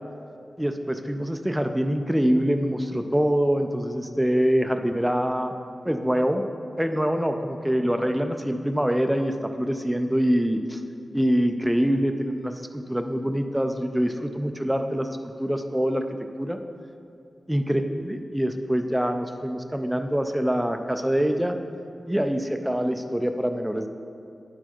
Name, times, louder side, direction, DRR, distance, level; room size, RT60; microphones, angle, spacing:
voice 1, 0.6-5.5 5.8-6.4 6.8-10.8 11.1-16.0 16.4-16.6 17.5-21.6 22.1-23.9, equal, 5° right, 6 dB, 0.3 m, -25 dB
9.5 x 4.6 x 4.4 m, 2.5 s
wide cardioid pair, 135°, 0 cm